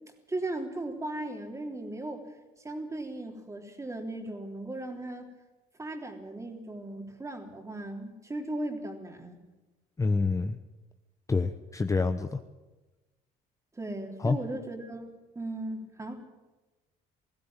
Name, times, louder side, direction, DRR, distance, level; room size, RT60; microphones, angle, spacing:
voice 1, 0.3-2.3 2.6-5.3 5.8-9.4 13.8-15.1 15.4-16.2, right 2 dB, 15° right, 3 dB, 3.4 m, -37 dB
voice 2, 10.0-10.6 11.3-12.4 14.2-14.4, left 4 dB, 20° left, 8 dB, 0.9 m, -27 dB
19.5 x 15.5 x 8.9 m, 1.1 s
cardioid pair, 110°, 17 cm